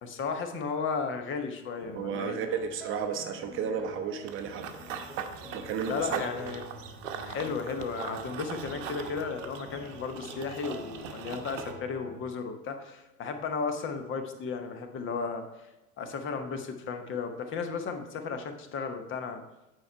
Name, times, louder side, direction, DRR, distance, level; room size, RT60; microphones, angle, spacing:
voice 1, 0.0-2.4 5.9-6.6 7.2-15.4 16.0-19.4, left 5 dB, 30° left, 7 dB, 0.9 m, -34 dB
sound 1, 1.8-12.3, left 1 dB, ahead, 2.1 m, -46 dB
voice 2, 1.9-4.7 5.5-6.1, right 7 dB, 30° right, 6 dB, 0.7 m, -33 dB
Run / Bird vocalization bird call bird song, 4.3-11.7, right 8 dB, 55° right, 0.9 m, -40 dB
8.7 x 4.7 x 4.4 m, 0.97 s
figure-of-eight pair, 80°, 43 cm